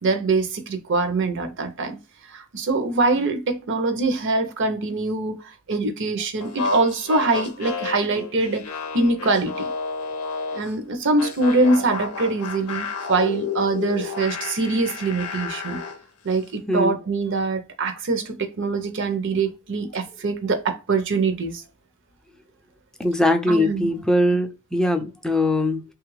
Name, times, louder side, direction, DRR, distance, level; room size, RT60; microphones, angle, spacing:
voice 1, 0.0-2.0 2.3-8.6 8.9-9.7 10.5-15.8 16.2-21.6 23.5-23.9, right 3 dB, 55° right, 0.6 m, -23 dB
sound 1, 6.4-10.7 11.2-16.0, left 5 dB, 85° left, 0.6 m, -31 dB
voice 2, 23.0-25.8, left 1 dB, 5° left, 0.4 m, -21 dB
3.2 x 2.3 x 3.1 m
head